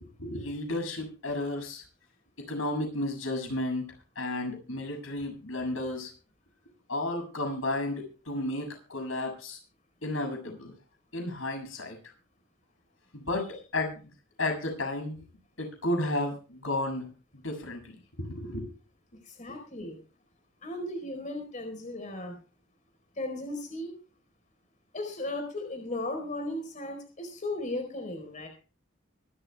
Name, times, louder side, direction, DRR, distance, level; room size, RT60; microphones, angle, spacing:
voice 1, 0.0-1.8 2.4-3.9 4.2-6.1 6.9-9.6 10.0-10.8 11.1-12.0 13.1-14.0 14.4-15.2 15.6-17.1 17.4-18.7, left 1 dB, 90° left, 4 dB, 6.9 m, -33 dB
voice 2, 19.2-20.0 20.6-22.4 23.1-23.9 24.9-28.5, left 1 dB, 40° left, 5 dB, 4.3 m, -36 dB
24.5 x 14.0 x 2.3 m, 0.35 s
head